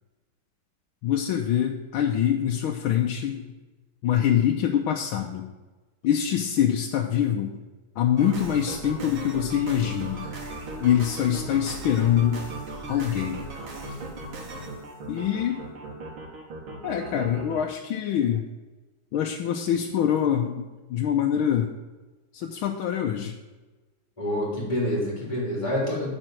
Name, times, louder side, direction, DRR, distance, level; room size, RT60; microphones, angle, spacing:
voice 1, 1.0-3.5 4.0-5.5 6.0-7.5 8.0-10.2 10.8-12.4 12.9-13.4 15.1-15.6 16.8-18.5 19.1-21.7 22.3-23.3, left 9 dB, 80° left, 2 dB, 1.5 m, -24 dB
sound 1, 8.2-17.6, right 2 dB, 80° right, 2.5 m, -37 dB
voice 2, 24.2-26.1, left 1 dB, 15° left, -5 dB, 3.7 m, -27 dB
9.1 x 5.4 x 7.6 m, 1.2 s
omnidirectional pair, 2.3 m